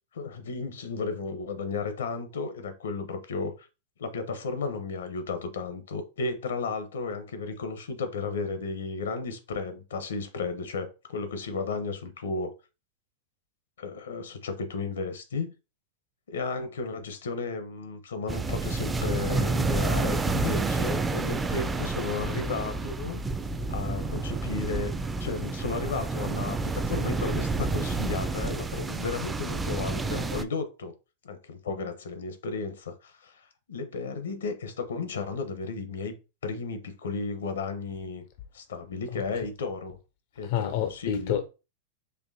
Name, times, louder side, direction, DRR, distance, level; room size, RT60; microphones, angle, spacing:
voice 1, 0.1-3.7 4.0-12.5 13.8-15.5 16.3-23.2 23.7-24.9 25.2-30.9 31.2-36.1 36.4-38.2 38.5-40.0 40.4-41.4, left 4 dB, 90° left, 0.8 m, -34 dB
sound 1, 18.3-30.4, right 3 dB, 15° right, 0.4 m, -29 dB
voice 2, 40.4-41.5, left 9 dB, 55° left, 0.4 m, -29 dB
4.3 x 2.7 x 2.7 m
hypercardioid pair, 120°, 0 cm